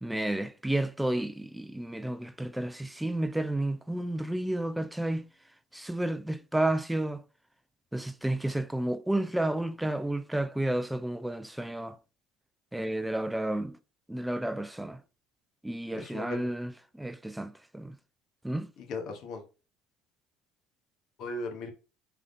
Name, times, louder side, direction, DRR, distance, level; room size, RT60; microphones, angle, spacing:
voice 1, 0.0-5.2 5.7-7.2 7.9-12.0 12.7-13.8 14.1-15.0 15.6-17.9 18.4-18.7, right 1 dB, 5° right, 0.4 m, -31 dB
voice 2, 15.9-16.5 18.8-19.4 21.2-21.7, left 2 dB, 60° left, 1.1 m, -37 dB
3.5 x 3.5 x 2.6 m
supercardioid pair, 85°, 0 cm